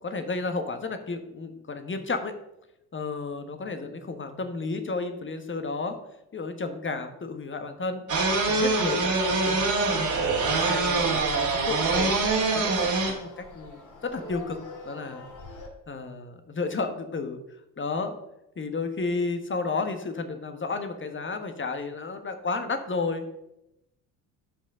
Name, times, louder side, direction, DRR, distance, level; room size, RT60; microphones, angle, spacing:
voice 1, 0.0-2.3 2.9-6.0 6.3-8.0 8.5-12.9 13.2-14.6 14.8-15.3 15.9-17.4 17.8-18.2 18.6-23.3, left 3 dB, 25° left, 7 dB, 1.3 m, -32 dB
sound 1, 8.1-13.1, right 3 dB, 40° right, 2.5 m, -24 dB
sound 2, 9.0-15.7, right 2 dB, 40° left, 2.1 m, -40 dB
12.5 x 5.5 x 3.7 m, 0.87 s
hypercardioid pair, 55°, 45 cm